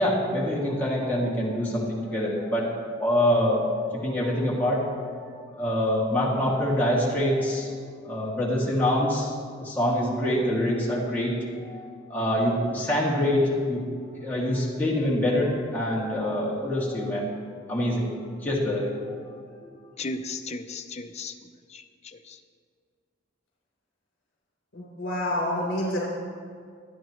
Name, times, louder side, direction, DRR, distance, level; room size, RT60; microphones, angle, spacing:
voice 1, 0.0-7.7 8.0-13.8 14.1-17.4 17.7-19.3 19.6-19.7, left 1 dB, 10° left, -6 dB, 2.5 m, -26 dB
voice 2, 20.0-21.3 21.7-22.4, left 3 dB, 35° left, 5 dB, 0.6 m, -36 dB
voice 3, 24.7-26.0, left 1 dB, 70° left, -4 dB, 4.1 m, -28 dB
26.0 x 9.4 x 3.2 m, 2.1 s
head